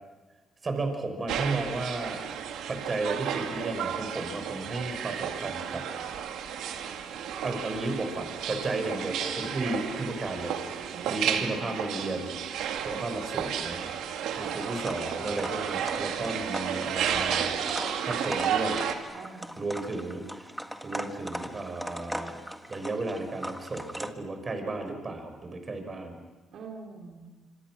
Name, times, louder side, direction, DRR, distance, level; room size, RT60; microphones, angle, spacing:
voice 1, 0.6-2.2 2.7-5.8 7.4-10.5 11.1-12.6 12.8-17.6 18.0-18.8 19.6-20.2 20.8-22.4 22.7-26.2, right 2 dB, 35° right, 6 dB, 5.6 m, -34 dB
sound 1, 1.3-19.0, right 8 dB, 85° right, 2.2 m, -32 dB
voice 2, 10.9-11.6 14.4-14.6 16.2-16.8 19.1-20.2 26.5-27.3, right 3 dB, 70° right, 1 dB, 3.2 m, -46 dB
sound 2, 14.6-24.1, equal, ahead, 1.7 m, -39 dB
26.5 x 26.0 x 6.3 m, 1.2 s
cardioid pair, 90°, 0 cm